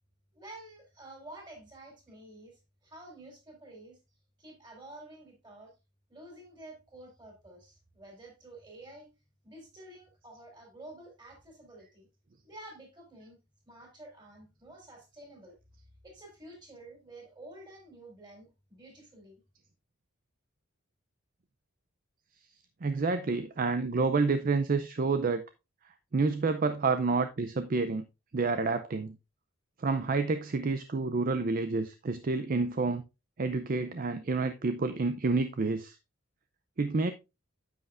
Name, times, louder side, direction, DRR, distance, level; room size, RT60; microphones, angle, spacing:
voice 1, 0.3-4.0 4.4-5.7 6.1-9.1 9.4-12.1 12.4-13.4 13.7-15.6 16.0-19.4, right 1 dB, 20° right, 3.9 m, -50 dB
voice 2, 22.8-25.4 26.1-28.0 28.3-29.2 29.8-33.0 33.4-36.0 36.8-37.1, right 4 dB, 40° right, 0.5 m, -29 dB
9.5 x 8.0 x 2.5 m
head